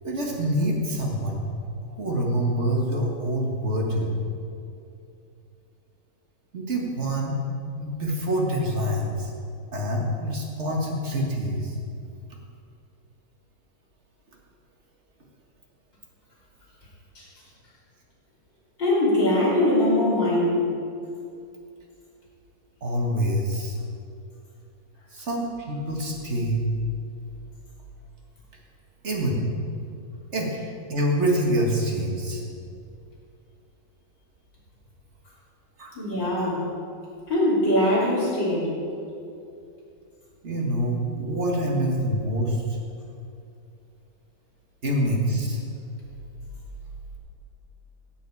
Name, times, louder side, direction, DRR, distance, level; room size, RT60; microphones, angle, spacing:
voice 1, 0.0-1.5 1.8-4.2 6.5-7.4 7.8-9.3 9.7-11.7 22.8-23.8 25.1-26.7 29.0-29.4 30.3-30.5 30.9-32.4 35.8-35.9 36.4-36.6 40.4-42.8 44.8-45.6, right 1 dB, 35° right, -1 dB, 1.9 m, -26 dB
voice 2, 18.8-20.6 36.0-36.6 37.3-38.7, left 1 dB, 60° left, -7 dB, 4.0 m, -22 dB
15.5 x 8.4 x 4.8 m, 2.5 s
omnidirectional pair, 2.2 m